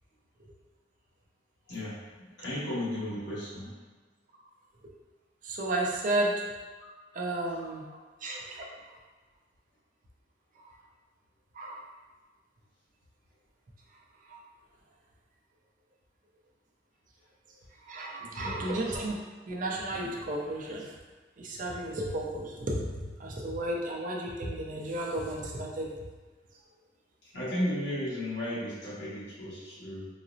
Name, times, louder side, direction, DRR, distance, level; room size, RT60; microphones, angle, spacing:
voice 1, 1.7-2.0 2.4-3.7 7.9-8.0 18.2-18.6 27.2-30.1, left 1 dB, 65° left, -10 dB, 1.3 m, -34 dB
voice 2, 5.4-6.3 7.1-7.8 8.2-8.6 11.6-11.8 17.9-19.2 19.5-20.9 21.4-22.9 23.2-26.0, right 1 dB, 45° right, -2 dB, 0.5 m, -33 dB
3.9 x 2.0 x 2.6 m, 1.3 s
head